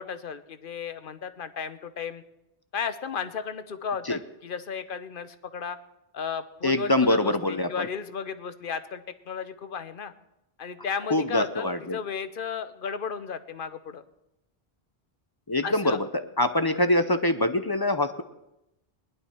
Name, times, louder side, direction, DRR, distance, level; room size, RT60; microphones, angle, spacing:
voice 1, 0.0-2.2 2.7-5.8 6.1-10.1 10.6-14.0 15.6-16.0, left 6 dB, 60° left, 11 dB, 0.9 m, -34 dB
voice 2, 6.6-7.9 11.1-12.0 15.5-18.2, left 1 dB, 30° left, 9 dB, 0.5 m, -24 dB
20.0 x 11.0 x 4.4 m, 0.88 s
omnidirectional pair, 1.0 m